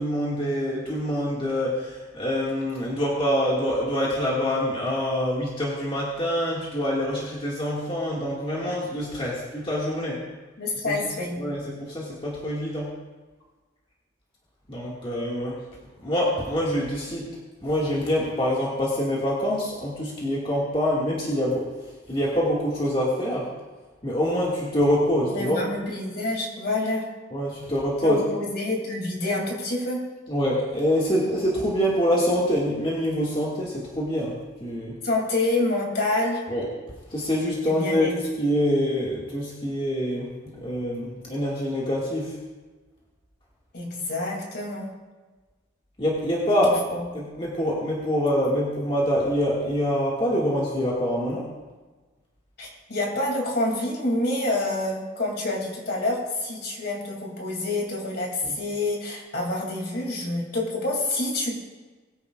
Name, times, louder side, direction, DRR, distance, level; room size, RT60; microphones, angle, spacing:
voice 1, 0.0-10.2 10.8-11.0 11.4-12.9 14.7-15.6 16.0-17.3 17.6-21.7 22.1-23.5 24.0-25.6 27.3-28.2 30.3-35.0 36.5-36.7 37.1-42.4 46.0-51.5 58.4-58.6, equal, 25° left, -5 dB, 1.9 m, -25 dB
voice 2, 10.6-11.3 25.3-27.0 28.0-30.0 35.0-36.4 37.6-38.1 43.7-44.9 46.5-46.6 46.9-47.0 52.6-61.5, left 2 dB, 50° left, -1 dB, 2.7 m, -27 dB
21.5 x 10.0 x 2.4 m, 1.3 s
head